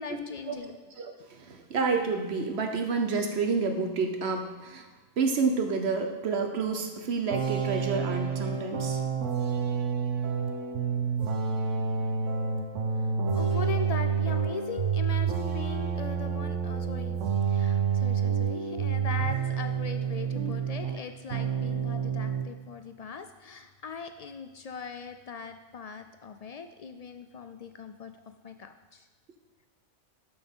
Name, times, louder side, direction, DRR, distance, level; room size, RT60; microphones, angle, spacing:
voice 1, 0.0-0.8 13.0-17.2 17.5-28.1 28.4-29.1, left 5 dB, 70° left, 8 dB, 0.3 m, -40 dB
voice 2, 1.0-4.9 5.2-9.0, right 4 dB, 60° right, 5 dB, 1.1 m, -29 dB
sound 1, 7.3-21.0 21.3-22.5, right 6 dB, 85° right, 1.1 m, -29 dB
12.5 x 6.2 x 3.7 m, 1.3 s
omnidirectional pair, 1.3 m